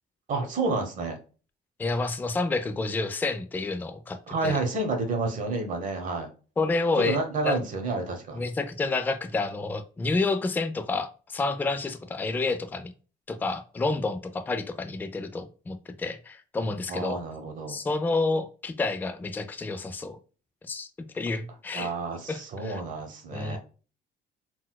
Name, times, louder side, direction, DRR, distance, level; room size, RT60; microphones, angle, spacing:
voice 1, 0.3-1.2 4.3-6.3 7.0-8.4 16.9-17.8 21.7-23.6, right 3 dB, 50° right, 1.0 m, -30 dB
voice 2, 1.8-4.2 4.4-4.6 6.6-7.2 7.4-7.6 8.3-12.9 13.3-17.2 17.7-20.2 20.7-20.9 21.1-21.9 22.3-22.8 23.3-23.6, left 3 dB, 10° left, 0.3 m, -29 dB
4.0 x 2.2 x 2.2 m
cardioid pair, 110°, 17 cm